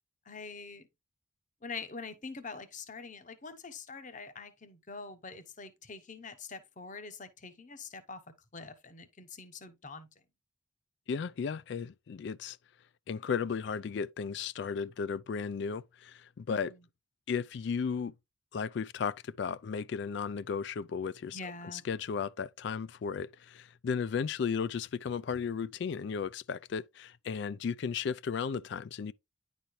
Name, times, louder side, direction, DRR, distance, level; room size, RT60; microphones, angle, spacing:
voice 1, 0.3-0.9 1.6-8.2 8.5-10.1 16.5-16.8 21.3-21.8, left 4 dB, 40° left, 0.9 m, -45 dB
voice 2, 11.1-12.6 13.1-16.7 17.3-18.1 18.5-21.4 21.7-29.1, left 6 dB, 60° left, 0.3 m, -35 dB
10.5 x 4.2 x 3.1 m
head